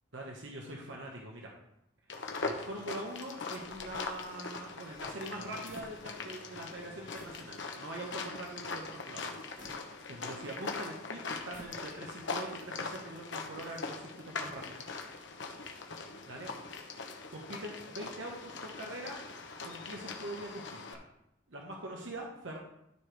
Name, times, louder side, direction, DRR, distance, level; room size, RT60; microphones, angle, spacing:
voice 1, 0.1-1.5 2.4-9.7 10.1-14.8 16.3-16.8 17.3-19.2 19.6-21.0 21.5-22.6, right 1 dB, 75° right, -1 dB, 1.2 m, -43 dB
sound 1, 2.1-20.9, left 4 dB, 70° left, 1.0 m, -41 dB
sound 2, 3.6-6.4 6.7-6.8 7.1-7.5 7.9-8.0 9.6-10.6 11.3-12.2, right 1 dB, 35° right, 1.3 m, -56 dB
13.0 x 4.9 x 3.5 m, 0.80 s
head